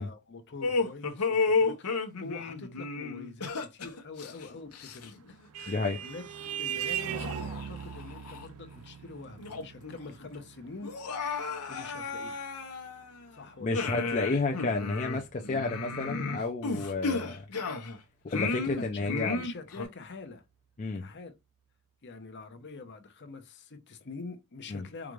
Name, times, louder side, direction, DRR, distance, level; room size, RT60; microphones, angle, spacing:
voice 1, 0.0-5.4 6.0-6.2 6.5-10.9 11.7-12.5 13.3-14.1 18.9-20.4 20.9-21.4 22.0-25.1, left 3 dB, 50° left, 0.8 m, -45 dB
sound 1, 0.6-5.3 5.6-5.8 6.5-6.6 7.2-8.5 8.9-9.0 9.4-9.9 10.2-10.3 10.8-13.3 13.7-18.0 18.3-19.8, left 4 dB, 90° left, 1.0 m, -33 dB
Vehicle horn car horn honking, 4.9-13.9, right 9 dB, 65° right, 0.4 m, -40 dB
voice 2, 5.7-6.0 13.6-17.4 18.2-19.4 20.8-21.1 24.7-24.9, left 3 dB, 35° left, 0.5 m, -31 dB
4.9 x 2.4 x 3.1 m
head